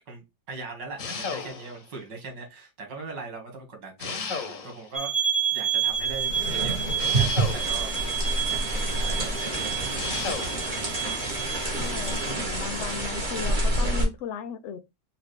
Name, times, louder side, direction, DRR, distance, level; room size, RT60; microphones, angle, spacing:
voice 1, 0.1-5.1 5.5-7.9 8.5-10.9, right 4 dB, 85° right, 2.4 m, -41 dB
sound 1, 1.0-1.9 4.0-5.0 7.0-8.0 10.0-10.7, left 5 dB, 55° left, 1.2 m, -34 dB
sound 2, 4.9-12.3, right 8 dB, 15° right, 1.1 m, -30 dB
sound 3, 5.9-14.1, right 1 dB, 30° right, 1.5 m, -28 dB
voice 2, 11.7-14.8, left 7 dB, 70° left, 0.6 m, -36 dB
5.2 x 2.9 x 3.2 m
omnidirectional pair, 1.9 m